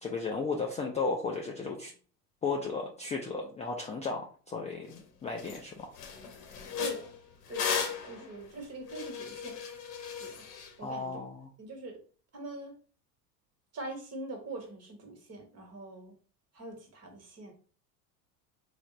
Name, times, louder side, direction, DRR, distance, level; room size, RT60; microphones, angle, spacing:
voice 1, 0.0-1.9 2.4-5.9 10.8-11.5, left 4 dB, 15° left, 0 dB, 0.3 m, -34 dB
sound 1, 4.9-5.0 5.4-5.6 5.9-10.7, left 6 dB, 75° left, 0.9 m, -36 dB
voice 2, 6.8-7.1 7.5-7.8 8.0-9.7 10.2-10.4 10.8-11.2 11.6-12.0 12.3-12.7 13.7-16.1 16.5-17.5, right 2 dB, 30° right, 3 dB, 1.2 m, -43 dB
3.2 x 2.1 x 3.7 m, 0.40 s
hypercardioid pair, 85°, 47 cm